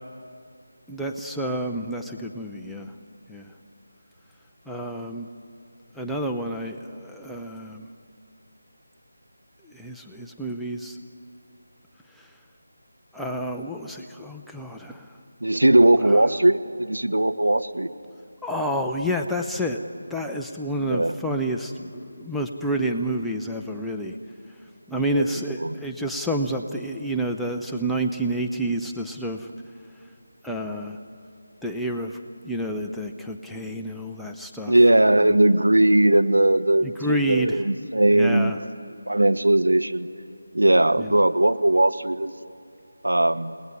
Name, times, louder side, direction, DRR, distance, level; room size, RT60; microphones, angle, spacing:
voice 1, 0.9-2.9 3.3-3.5 4.7-5.3 5.9-7.8 9.6-11.0 12.2-12.3 13.1-15.1 16.0-16.3 18.4-19.8 20.1-24.2 24.9-29.5 30.4-31.0 31.6-32.2 32.4-34.8 36.8-37.7 38.1-38.6 41.0-41.2, right 1 dB, ahead, 0 dB, 0.8 m, -29 dB
voice 2, 15.4-17.9 20.8-21.2 25.0-25.2 25.6-25.8 34.7-38.6 39.1-40.1 40.5-42.3 43.0-43.5, right 1 dB, 80° right, 10 dB, 1.1 m, -19 dB
29.0 x 19.0 x 9.8 m, 2.4 s
figure-of-eight pair, 160°, 0 cm